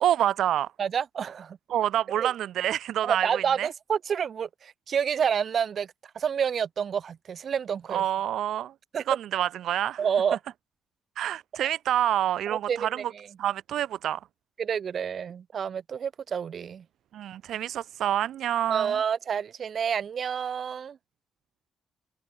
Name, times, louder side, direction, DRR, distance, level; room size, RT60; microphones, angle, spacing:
voice 1, 0.0-0.7 1.7-3.7 7.9-8.7 9.1-10.0 11.2-13.1 13.4-14.2 17.1-18.9, right 11 dB, 75° right, 0.3 m, -27 dB
voice 2, 0.8-1.6 2.2-2.3 3.0-5.9 6.2-8.0 8.9-9.0 10.0-10.4 11.6-11.7 12.5-13.3 14.6-16.8 18.7-21.0, right 7 dB, 50° right, 2.0 m, -29 dB
cardioid pair, 90°, 0 cm